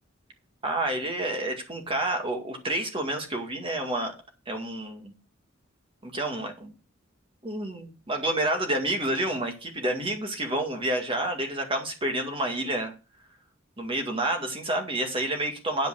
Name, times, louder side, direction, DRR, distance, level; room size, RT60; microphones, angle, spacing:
voice 1, 0.6-4.2 4.5-5.1 6.0-6.7 7.4-12.9 13.8-15.9, right 1 dB, 25° right, 4 dB, 2.1 m, -29 dB
11.0 x 5.1 x 6.5 m, 0.32 s
head